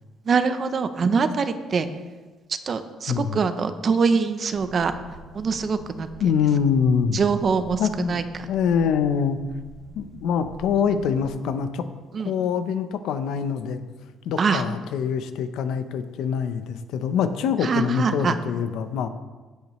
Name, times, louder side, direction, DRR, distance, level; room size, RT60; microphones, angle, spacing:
voice 1, 0.3-1.9 2.7-4.9 5.3-6.1 7.1-7.8 8.1-8.5 12.1-12.3 14.4-14.6 17.6-18.3, right 5 dB, 35° right, 10 dB, 0.7 m, -23 dB
voice 2, 3.1-3.4 6.2-7.2 7.8-8.2 8.5-9.4 9.9-11.9 12.2-13.8 14.2-19.1, left 7 dB, 75° left, 10 dB, 0.7 m, -24 dB
sound 1, 4.5-11.3, right 2 dB, 60° right, 2.1 m, -44 dB
16.0 x 8.2 x 3.1 m, 1.3 s
cardioid pair, 150°, 0 cm